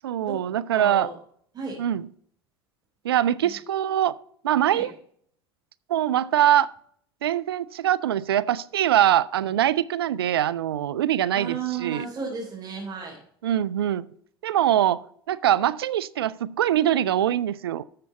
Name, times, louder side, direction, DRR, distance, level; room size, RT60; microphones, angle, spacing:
voice 1, 0.0-1.1 1.8-2.1 3.0-4.1 4.4-4.9 5.9-6.7 7.2-12.0 13.4-14.1 14.4-17.8, right 11 dB, 75° right, 0.5 m, -23 dB
voice 2, 0.7-1.1 1.5-1.8 3.4-3.5 4.7-4.9 11.3-13.2, right 5 dB, 30° right, 4.0 m, -33 dB
13.5 x 6.9 x 4.1 m
hypercardioid pair, 75°, 13 cm